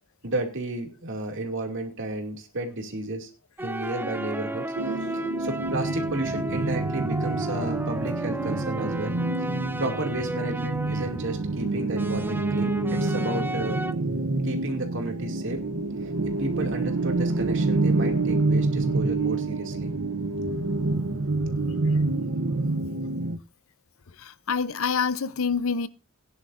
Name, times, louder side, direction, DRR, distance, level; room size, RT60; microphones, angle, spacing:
voice 1, 0.2-3.3 3.6-9.1 9.8-13.8 14.4-15.6 16.4-19.9, right 2 dB, 60° right, 2.5 m, -32 dB
sound 1, 3.6-11.5 12.0-13.9, right 1 dB, 10° right, 0.5 m, -33 dB
sound 2, 4.8-23.4, right 3 dB, 85° right, 1.0 m, -27 dB
voice 2, 24.1-25.9, left 5 dB, 70° left, 0.7 m, -27 dB
18.0 x 10.5 x 2.6 m
head